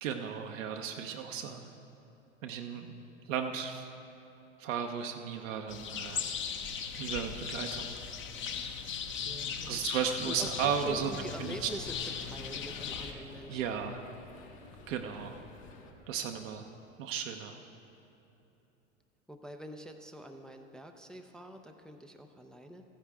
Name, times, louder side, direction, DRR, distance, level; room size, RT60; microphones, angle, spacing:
voice 1, 0.0-1.7 2.4-2.9 3.3-3.9 4.6-6.2 7.0-7.9 9.7-11.1 11.4-11.7 13.1-13.2 13.5-14.0 14.9-15.4 16.1-16.7 17.0-17.6, right 7 dB, 70° right, 3 dB, 0.8 m, -35 dB
sound 1, 5.7-13.1, left 7 dB, 30° left, 0.7 m, -38 dB
voice 2, 9.3-9.8 10.2-13.7 19.3-22.8, right 1 dB, ahead, 5 dB, 0.3 m, -44 dB
sound 2, 10.4-15.9, left 5 dB, 60° left, 1.5 m, -51 dB
14.0 x 10.0 x 3.4 m, 3.0 s
hypercardioid pair, 90°, 39 cm